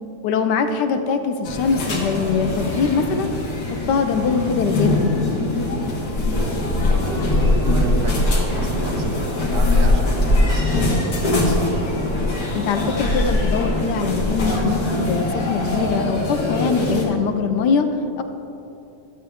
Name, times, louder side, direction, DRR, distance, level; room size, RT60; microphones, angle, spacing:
voice 1, 0.2-3.3 3.7-5.4 12.6-17.9 18.2-18.3, left 5 dB, 85° left, 7 dB, 1.3 m, -22 dB
sound 1, 1.4-17.0, left 2 dB, 65° left, 1.9 m, -21 dB
voice 2, 6.3-11.8, right 3 dB, 90° right, 3 dB, 1.7 m, -32 dB
12.5 x 7.6 x 3.5 m, 2.8 s
omnidirectional pair, 1.8 m